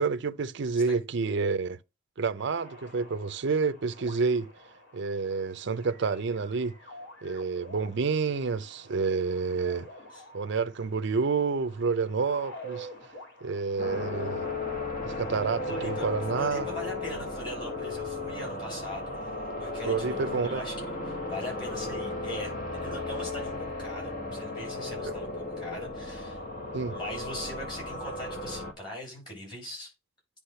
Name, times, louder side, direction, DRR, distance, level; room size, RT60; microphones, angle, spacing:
voice 1, 0.0-1.8 2.2-4.5 4.9-6.7 7.2-9.9 10.3-12.9 13.4-14.5 15.0-16.7 19.8-20.6 26.7-27.0, right 4 dB, 60° right, 0.5 m, -29 dB
sound 1, 2.4-17.8, equal, 60° left, 3.3 m, -49 dB
sound 2, 13.8-28.7, left 2 dB, 45° left, 1.5 m, -35 dB
voice 2, 15.6-16.1 16.3-19.2 19.6-22.5 22.8-26.4 26.9-29.9, left 1 dB, 25° left, 6.3 m, -40 dB
9.7 x 3.5 x 5.6 m
head